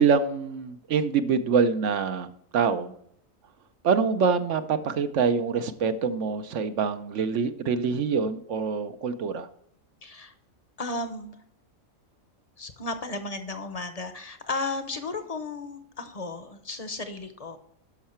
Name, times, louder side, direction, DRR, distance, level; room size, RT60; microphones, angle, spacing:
voice 1, 0.0-2.9 3.8-9.5, right 5 dB, 65° right, 10 dB, 0.9 m, -25 dB
voice 2, 10.0-10.3 10.8-11.4 12.6-17.6, left 3 dB, 35° left, 8 dB, 0.8 m, -34 dB
12.0 x 5.6 x 4.4 m, 0.68 s
omnidirectional pair, 1.4 m